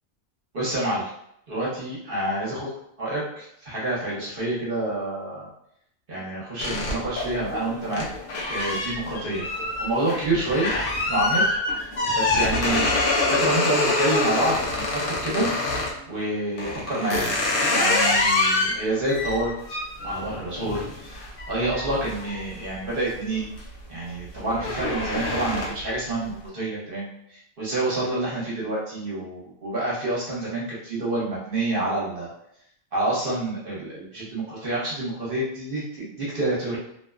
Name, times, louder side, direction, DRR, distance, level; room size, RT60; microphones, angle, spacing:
voice 1, 0.5-1.0 1.5-2.7 3.0-5.5 6.1-8.0 8.5-9.5 9.8-10.7 11.1-11.4 12.1-12.9 13.2-15.5 16.1-17.2 17.7-19.8 20.0-21.2 21.5-23.5 23.9-32.3 32.9-36.8, right 2 dB, 50° right, -6 dB, 1.0 m, -28 dB
sound 1, 6.6-16.0 16.6-23.0 23.4-23.8 24.1-25.9, left 2 dB, 55° left, 0.7 m, -26 dB
2.5 x 2.1 x 2.3 m, 0.73 s
omnidirectional pair, 1.3 m